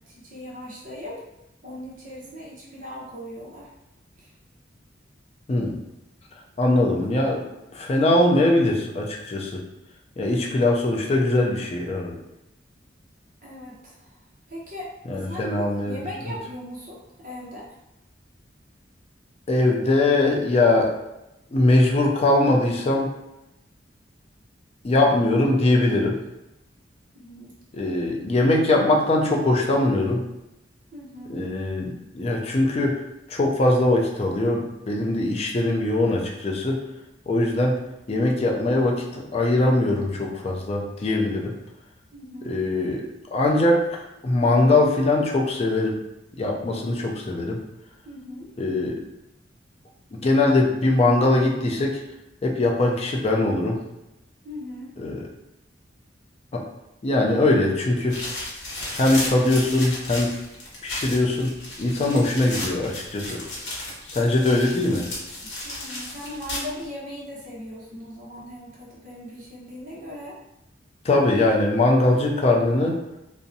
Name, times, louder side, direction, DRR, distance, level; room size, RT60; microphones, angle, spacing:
voice 1, 0.1-1.2 1.6-3.7 4.2-4.3 13.4-14.1 14.5-17.7 27.1-27.5 30.9-31.4 42.1-42.6 48.0-48.5 54.4-55.0 65.6-70.4, left 1 dB, 45° right, -5 dB, 0.7 m, -38 dB
voice 2, 6.6-7.4 7.7-9.6 10.2-12.2 15.1-16.0 19.5-20.9 21.5-23.1 24.8-26.2 27.7-30.2 31.3-33.0 33.3-36.8 37.3-37.8 38.1-41.5 42.5-43.9 44.2-46.0 46.4-47.6 48.6-49.0 50.1-52.0 52.4-53.8 55.0-55.3 56.5-56.6 57.0-58.2 58.9-60.3 60.8-61.5 61.8-63.4 64.1-65.1 71.0-73.0, left 2 dB, 35° left, 0 dB, 0.4 m, -21 dB
sound 1, 58.1-66.9, left 2 dB, 75° left, 0.8 m, -34 dB
2.6 x 2.0 x 2.5 m, 0.90 s
head